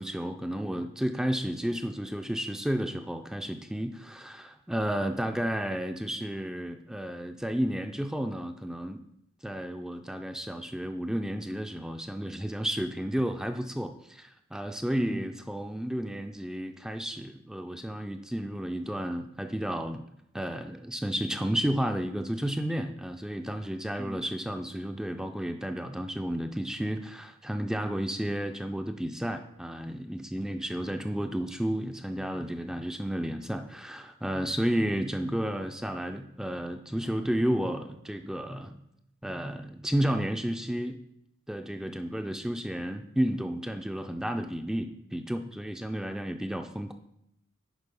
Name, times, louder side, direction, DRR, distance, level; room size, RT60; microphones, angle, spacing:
voice 1, 0.0-9.0 9.4-20.1 20.3-38.8 39.2-41.0 41.5-46.9, equal, 5° right, 6 dB, 0.3 m, -32 dB
9.9 x 4.0 x 5.3 m, 0.78 s
head